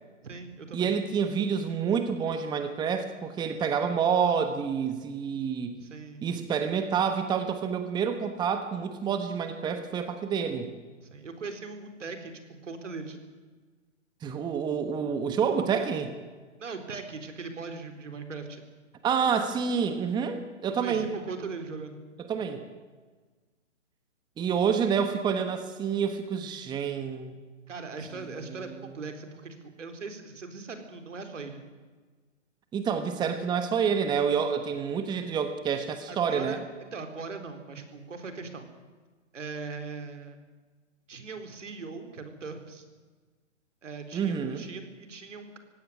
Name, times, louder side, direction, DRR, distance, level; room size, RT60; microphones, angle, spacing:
voice 1, 0.2-0.9 5.8-6.2 11.0-13.2 16.6-18.6 20.8-22.0 27.7-31.6 36.1-38.7 39.3-40.4 41.1-42.8 43.8-45.6, right 4 dB, 75° right, 7 dB, 4.0 m, -40 dB
voice 2, 0.7-5.8 6.2-10.7 14.2-16.1 19.0-21.1 22.3-22.6 24.4-27.3 28.6-28.7 32.7-36.6 44.1-44.6, right 7 dB, 10° right, 8 dB, 1.2 m, -28 dB
19.0 x 16.5 x 9.7 m, 1.4 s
hypercardioid pair, 135°, 37 cm